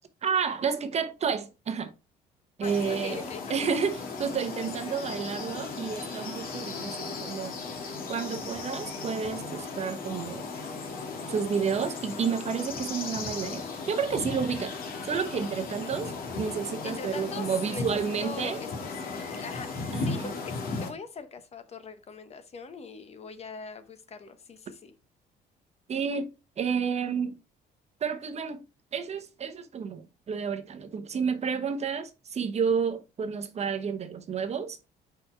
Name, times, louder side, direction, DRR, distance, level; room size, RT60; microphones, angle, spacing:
voice 1, 0.2-1.9 2.6-3.2 3.5-7.6 8.1-10.5 11.3-14.7 15.0-18.6 19.9-20.3 25.9-26.3 26.6-27.3 28.0-28.6 28.9-34.8, right 6 dB, 40° right, 1.0 m, -30 dB
sound 1, 2.6-20.9, left 4 dB, 60° left, 1.9 m, -36 dB
voice 2, 2.6-3.6 4.8-5.0 16.8-17.9 18.2-24.9, left 5 dB, 40° left, 1.0 m, -42 dB
5.6 x 4.3 x 4.4 m
cardioid pair, 110°, 17 cm